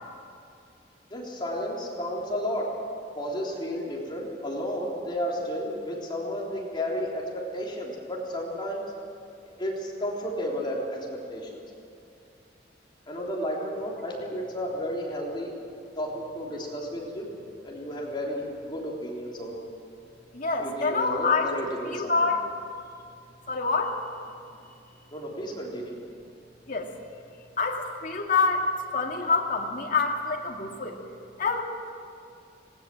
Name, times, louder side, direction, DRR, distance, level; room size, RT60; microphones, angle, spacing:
voice 1, 1.1-2.7 3.2-7.2 7.5-8.8 9.6-11.6 13.1-15.5 16.0-17.3 17.6-19.6 20.6-22.1 25.1-26.0, equal, 25° left, -3 dB, 3.5 m, -32 dB
voice 2, 20.3-21.6 21.8-22.4 23.5-24.0 26.7-26.9 27.6-31.0 31.4-31.6, left 4 dB, 50° left, 1 dB, 2.3 m, -26 dB
19.0 x 18.0 x 7.6 m, 2.5 s
head